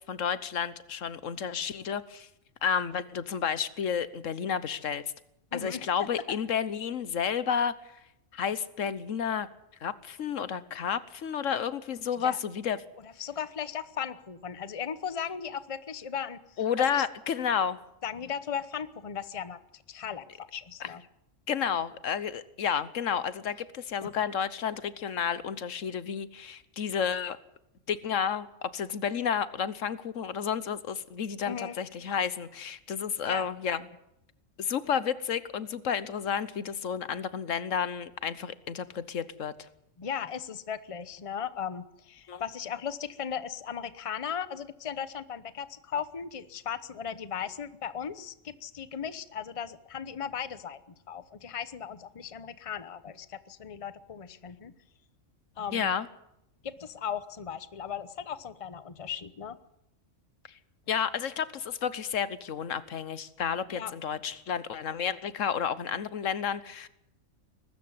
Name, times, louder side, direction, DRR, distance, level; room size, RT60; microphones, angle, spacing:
voice 1, 0.1-2.3 2.6-5.0 5.5-7.7 8.3-9.5 9.8-12.8 16.6-17.8 20.8-20.9 21.5-27.4 27.9-33.9 34.6-39.5 42.3-42.4 55.7-56.1 60.9-66.9, left 7 dB, 80° left, 16 dB, 1.4 m, -31 dB
voice 2, 5.5-6.4 12.2-12.4 13.0-16.6 16.9-17.0 18.0-20.2 20.5-21.0 24.0-24.1 31.4-31.8 33.2-33.4 40.0-50.8 51.1-54.7 55.6-55.9 56.6-59.6 63.7-63.9, left 8 dB, 30° left, 14 dB, 0.9 m, -37 dB
22.0 x 13.0 x 9.5 m, 0.83 s
omnidirectional pair, 1.3 m